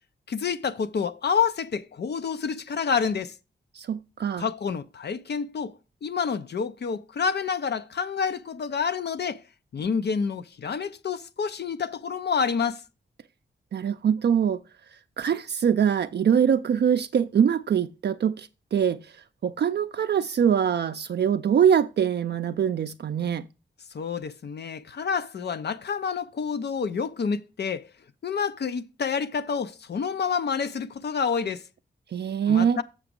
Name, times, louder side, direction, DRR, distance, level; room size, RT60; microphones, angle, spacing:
voice 1, 0.3-3.3 4.4-9.4 9.7-12.8 23.9-27.9 28.2-31.6 32.5-32.8, left 6 dB, 60° left, 0.6 m, -28 dB
voice 2, 3.7-4.5 13.7-14.6 15.2-19.1 19.4-23.5 32.1-32.8, right 8 dB, 60° right, 0.4 m, -23 dB
7.4 x 5.9 x 5.2 m
wide cardioid pair, 115°, 19 cm